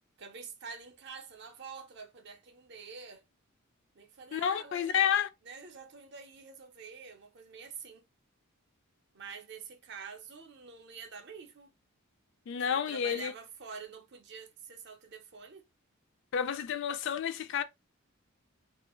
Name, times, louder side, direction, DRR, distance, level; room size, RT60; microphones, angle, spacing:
voice 1, 0.2-3.2 3.9-5.0 5.4-8.0 9.1-11.7 12.7-15.7, right 5 dB, 50° right, 0.6 m, -47 dB
voice 2, 4.3-5.3 12.5-13.3 16.3-17.6, left 8 dB, 55° left, 0.3 m, -30 dB
2.4 x 2.2 x 2.9 m
head